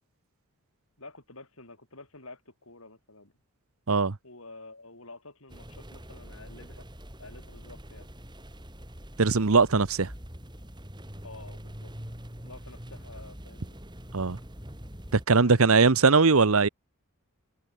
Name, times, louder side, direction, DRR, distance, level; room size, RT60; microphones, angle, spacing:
voice 1, 1.0-3.3 4.2-6.9 7.2-8.1 11.2-11.9 12.4-13.8 15.4-16.1, left 2 dB, 65° left, 7.5 m, -49 dB
sound 1, 5.5-15.3, equal, 20° right, 5.8 m, -44 dB
voice 2, 9.2-10.1 14.1-14.4 15.1-16.7, right 4 dB, 70° right, 1.0 m, -20 dB
open air
head